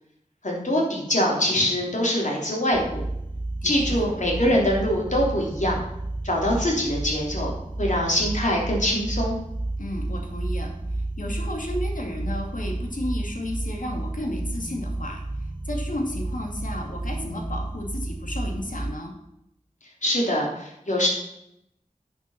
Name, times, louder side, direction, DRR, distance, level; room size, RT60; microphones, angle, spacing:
voice 1, 0.4-3.0 3.6-5.8 6.2-7.5 7.8-9.4 20.0-21.1, equal, 65° left, -2 dB, 3.2 m, -23 dB
sound 1, 2.7-18.9, right 2 dB, 35° right, 1.3 m, -31 dB
voice 2, 3.6-4.0 9.8-15.2 15.7-19.1, left 1 dB, 80° left, 2 dB, 2.1 m, -33 dB
11.0 x 6.0 x 5.7 m, 0.81 s
wide cardioid pair, 55°, 13 cm